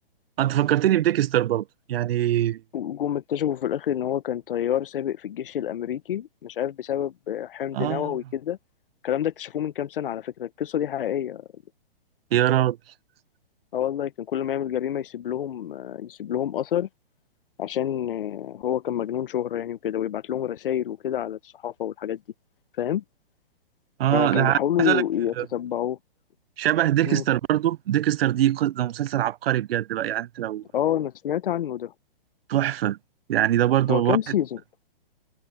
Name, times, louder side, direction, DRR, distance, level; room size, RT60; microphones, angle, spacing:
voice 1, 0.4-2.6 7.7-8.1 12.3-12.8 24.0-25.0 25.4-25.5 26.6-30.6 32.5-33.0 33.3-34.3, right 12 dB, 80° right, 0.5 m, -23 dB
voice 2, 2.7-8.6 9.0-11.5 13.7-16.9 17.6-22.2 22.8-23.0 24.1-26.0 27.0-27.2 30.7-31.9 33.9-34.6, left 10 dB, 65° left, 0.9 m, -28 dB
hypercardioid pair, 165°, 29 cm